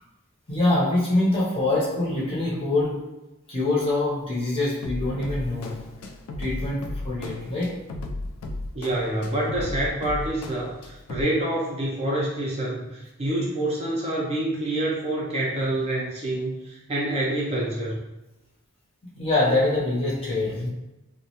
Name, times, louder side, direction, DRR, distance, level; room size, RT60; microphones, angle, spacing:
voice 1, 0.5-3.1 3.5-5.9 6.4-7.8 19.1-20.7, left 2 dB, 25° left, -6 dB, 0.6 m, -24 dB
sound 1, 4.8-11.2, left 2 dB, 85° left, 0.3 m, -35 dB
voice 2, 8.7-18.0, right 1 dB, 30° right, -4 dB, 0.4 m, -27 dB
2.2 x 2.1 x 2.8 m, 1.0 s
head